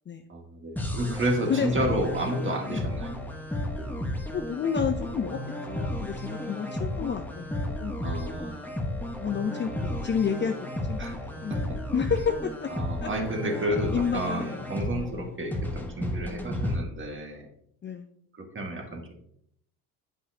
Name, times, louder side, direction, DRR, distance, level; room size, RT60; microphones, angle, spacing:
voice 1, 0.3-3.1 3.8-3.9 8.0-8.8 11.0-11.8 12.7-17.5 18.3-19.1, right 1 dB, 30° right, 2 dB, 1.8 m, -31 dB
sound 1, 0.8-16.8, left 1 dB, 5° left, 1.2 m, -33 dB
voice 2, 1.5-1.9 2.7-2.8 4.3-5.4 5.7-7.9 9.2-10.5 10.9-11.6 11.9-12.7 13.0-13.1 13.9-15.3 17.8-18.1, left 7 dB, 25° left, 6 dB, 0.6 m, -30 dB
8.2 x 5.3 x 2.8 m, 0.69 s
hypercardioid pair, 75°, 42 cm